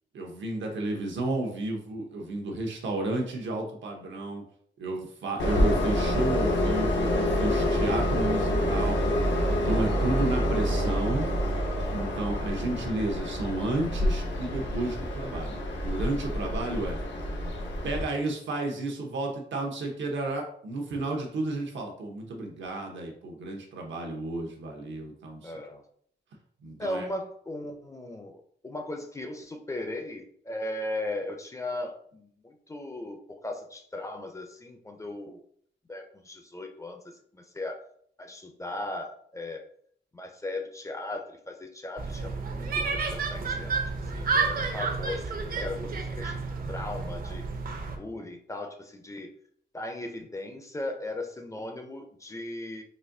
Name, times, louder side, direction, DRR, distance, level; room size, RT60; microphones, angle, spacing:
voice 1, 0.1-4.4 4.8-9.0 9.5-11.3 11.9-17.0 17.8-25.5 26.6-27.1, right 2 dB, 85° right, 1 dB, 0.8 m, -32 dB
Train, 5.4-18.0, left 1 dB, 80° left, 0.7 m, -27 dB
voice 2, 25.4-25.8 26.8-33.2 33.4-35.4 35.9-37.8 38.2-39.6 40.1-43.7 44.1-47.5 48.0-49.3 49.7-52.8, left 2 dB, 15° left, 4 dB, 0.4 m, -37 dB
sound 1, 42.0-48.0, right 4 dB, 50° right, 0.5 m, -30 dB
4.1 x 2.6 x 2.6 m, 0.62 s
wide cardioid pair, 150°, 19 cm